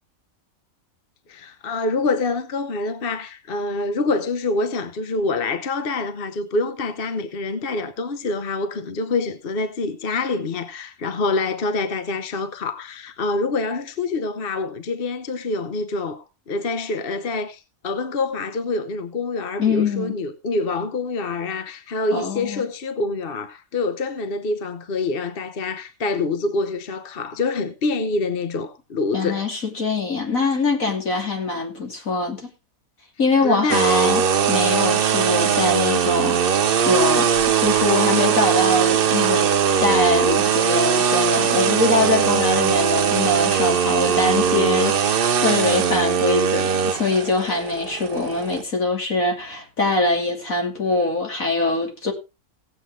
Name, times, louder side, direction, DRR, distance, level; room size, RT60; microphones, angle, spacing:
voice 1, 1.3-29.4 33.4-33.8, left 3 dB, 45° left, 1.0 m, -26 dB
voice 2, 19.6-20.1 22.1-22.6 29.1-32.5 33.2-39.5 39.8-52.1, left 3 dB, 65° left, 3.3 m, -23 dB
sound 1, 33.7-48.6, right 7 dB, 50° right, 0.7 m, -20 dB
17.5 x 7.9 x 3.6 m
omnidirectional pair, 1.6 m